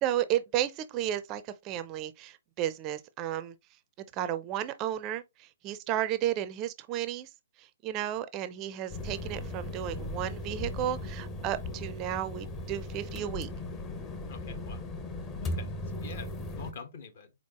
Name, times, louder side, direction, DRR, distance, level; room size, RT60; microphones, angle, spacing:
voice 1, 0.0-3.5 4.1-7.3 7.6-13.5, right 11 dB, 25° right, 0.4 m, -33 dB
sound 1, 8.9-16.7, left 2 dB, 20° left, 0.8 m, -37 dB
voice 2, 14.3-14.8 15.4-16.3 16.6-17.3, left 5 dB, 55° left, 1.2 m, -45 dB
4.5 x 4.1 x 2.9 m
figure-of-eight pair, 125°, 0 cm